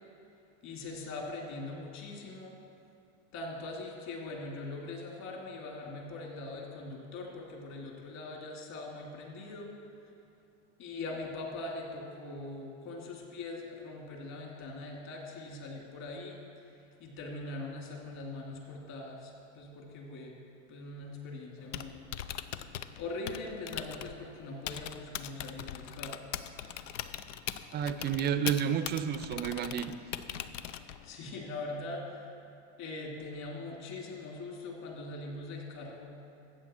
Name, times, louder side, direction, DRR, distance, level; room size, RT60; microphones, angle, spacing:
voice 1, 0.6-2.6 3.3-9.7 10.8-16.4 16.6-20.4 20.7-22.1 23.0-26.2 31.0-32.3 32.8-36.1, left 2 dB, 50° left, -1 dB, 2.7 m, -42 dB
Typing, 21.6-31.2, left 10 dB, 90° left, 0.6 m, -41 dB
voice 2, 27.7-30.0, right 8 dB, 30° right, 12 dB, 0.5 m, -31 dB
13.5 x 8.0 x 4.4 m, 2.6 s
hypercardioid pair, 110°, 36 cm